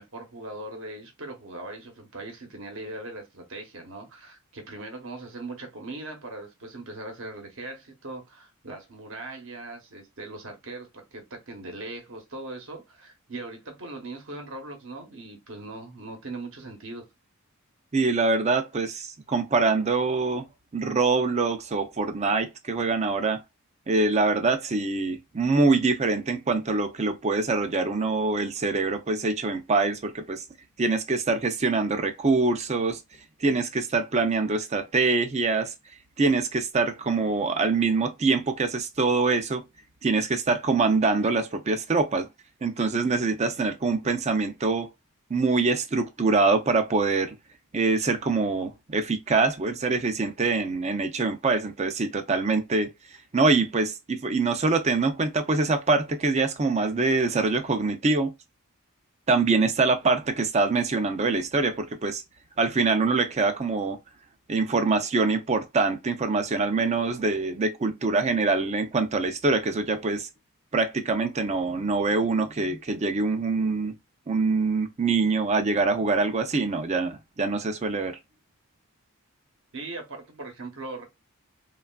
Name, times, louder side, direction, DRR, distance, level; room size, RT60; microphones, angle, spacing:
voice 1, 0.0-17.0 79.7-81.0, right 2 dB, 60° right, 0.9 m, -40 dB
voice 2, 17.9-20.5 20.7-23.4 23.9-30.4 30.8-33.0 33.4-35.7 36.2-39.6 40.0-42.3 42.6-44.9 45.3-47.3 47.7-52.9 53.3-58.3 59.3-62.2 62.6-64.0 64.5-70.3 70.7-73.9 74.3-78.2, right 3 dB, 30° right, 0.5 m, -24 dB
3.2 x 2.3 x 2.2 m
head